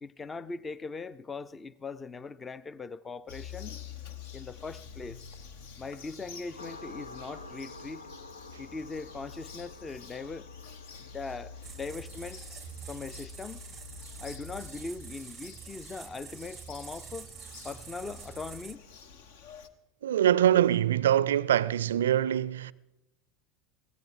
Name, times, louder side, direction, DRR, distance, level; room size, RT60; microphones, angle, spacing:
voice 1, 0.0-3.8 4.3-5.2 5.8-8.1 8.6-10.5 11.0-12.4 12.9-13.6 14.2-17.3 17.6-18.9, left 4 dB, 20° left, 0.6 m, -40 dB
Bird vocalization bird call bird song, 3.3-19.7, left 6 dB, 60° left, 1.2 m, -48 dB
sound 1, 6.6-15.8, left 2 dB, 80° left, 0.8 m, -50 dB
sound 2, 11.6-18.8, right 7 dB, 25° right, 0.6 m, -46 dB
voice 2, 20.0-22.7, right 11 dB, 70° right, 0.4 m, -24 dB
22.5 x 16.5 x 3.7 m
figure-of-eight pair, 75°, 0 cm